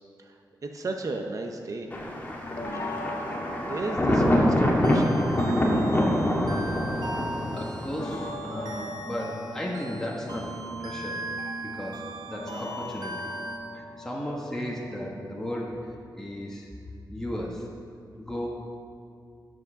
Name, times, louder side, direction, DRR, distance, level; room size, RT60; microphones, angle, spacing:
voice 1, 0.2-1.9 2.7-3.0 3.5-5.2, right 3 dB, 50° right, 3 dB, 0.7 m, -35 dB
sound 1, 1.8-16.0, left 1 dB, 50° left, 1.2 m, -40 dB
Thunder, 1.9-8.3, left 1 dB, 20° left, 1.6 m, -25 dB
sound 2, 4.8-13.6, right 2 dB, 70° right, 1.1 m, -39 dB
voice 2, 7.5-11.2 11.6-13.3 13.7-16.7 17.1-17.7 18.2-18.5, equal, 5° left, -3 dB, 1.2 m, -35 dB
10.5 x 6.2 x 6.7 m, 2.3 s
wide cardioid pair, 110°, 7 cm